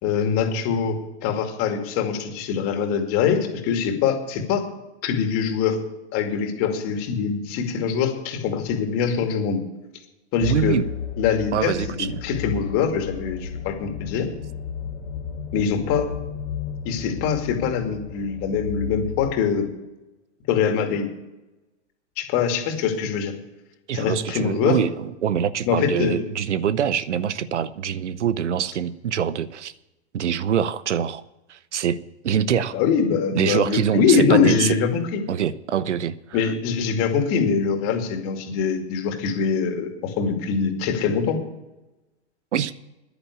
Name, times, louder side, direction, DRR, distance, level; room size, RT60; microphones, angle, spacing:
voice 1, 0.0-4.6 5.0-5.8 6.1-9.6 10.3-10.8 11.2-11.7 12.0-14.3 15.5-16.1 16.8-19.7 20.5-21.1 22.2-23.3 23.9-24.8 25.6-26.2 32.7-35.2 36.3-41.4, left 6 dB, 40° left, 5 dB, 2.4 m, -23 dB
sound 1, 10.4-19.3, left 6 dB, 80° left, 2.2 m, -33 dB
voice 2, 10.4-10.9 11.5-12.2 23.9-29.7 30.1-31.2 31.5-32.0 32.2-32.8 33.3-34.7 35.3-36.5 42.5-42.7, right 9 dB, 85° right, 17 dB, 0.8 m, -24 dB
10.5 x 9.7 x 8.4 m, 0.99 s
hypercardioid pair, 120°, 34 cm